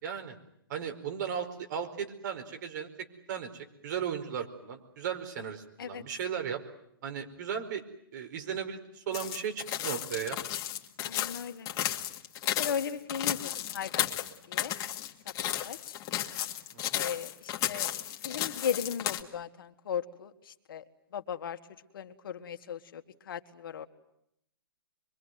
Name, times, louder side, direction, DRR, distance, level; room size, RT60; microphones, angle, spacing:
voice 1, 0.0-0.4 0.7-6.6 7.0-7.8 8.1-10.4 16.7-17.0, right 8 dB, 50° right, 7 dB, 4.7 m, -36 dB
sound 1, 9.1-19.2, left 12 dB, 30° left, 2.1 m, -34 dB
voice 2, 11.0-11.7 12.6-14.1 14.5-14.7 15.4-15.9 16.9-20.8 21.1-21.6 21.9-23.9, left 8 dB, 70° left, 7 dB, 2.1 m, -37 dB
25.5 x 24.0 x 9.4 m, 0.76 s
hypercardioid pair, 145°, 12 cm